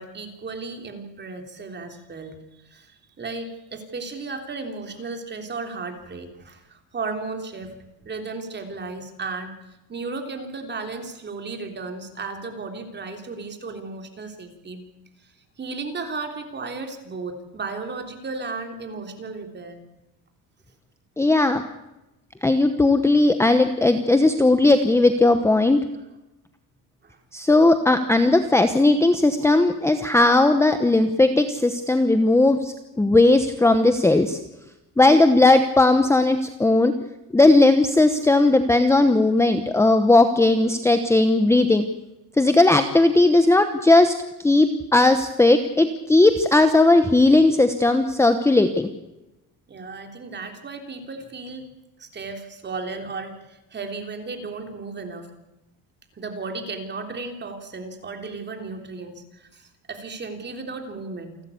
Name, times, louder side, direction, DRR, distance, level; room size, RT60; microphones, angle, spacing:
voice 1, 0.0-2.4 2.7-9.5 9.9-14.8 15.6-19.8 27.0-27.2 49.7-51.7 52.0-55.3 56.2-61.3, right 3 dB, 25° right, 4 dB, 3.4 m, -34 dB
voice 2, 21.2-21.6 22.4-25.8 27.3-34.4 35.0-36.9 37.3-41.8 42.4-44.1 44.4-48.9, left 2 dB, 5° left, 8 dB, 1.0 m, -17 dB
28.5 x 12.5 x 8.5 m, 0.97 s
cardioid pair, 150°, 39 cm